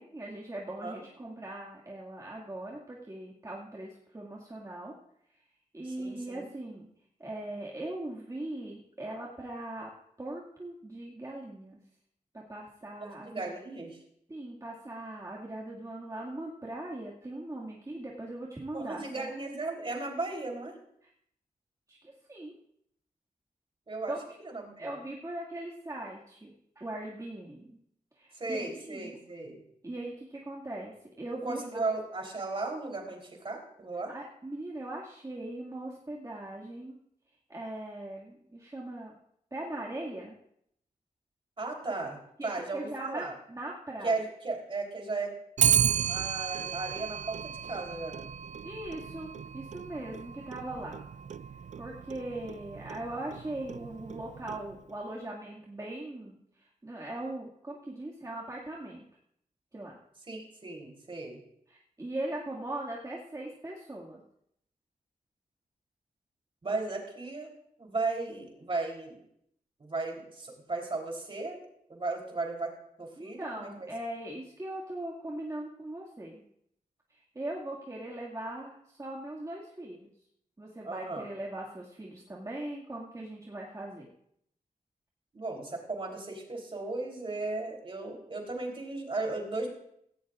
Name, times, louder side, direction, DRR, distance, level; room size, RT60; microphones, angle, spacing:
voice 1, 0.0-4.9 5.7-6.9 7.2-9.9 10.2-11.8 12.3-13.5 14.3-19.3 21.0-21.1 21.9-22.6 24.1-24.3 24.8-27.8 28.1-29.2 29.8-31.8 34.1-37.0 37.5-39.2 39.5-40.4 42.4-44.1 48.6-51.0 51.8-59.0 59.7-60.0 61.7-64.2 72.3-72.4 73.2-76.4 77.1-80.1 80.6-84.1, right 1 dB, 25° right, -4 dB, 2.1 m, -40 dB
voice 2, 5.8-6.5 13.3-14.0 18.7-20.8 23.9-24.1 24.4-24.9 28.3-29.6 31.4-34.1 41.6-43.3 44.0-45.3 45.7-48.3 60.3-61.4 66.6-67.5 67.8-69.2 69.8-71.6 71.9-73.9 80.8-81.3 85.3-89.7, right 3 dB, 40° right, 1 dB, 3.6 m, -36 dB
Clock, 45.6-54.9, right 9 dB, 55° right, 0.4 m, -33 dB
17.0 x 17.0 x 2.5 m, 0.72 s
wide cardioid pair, 100°, 14 cm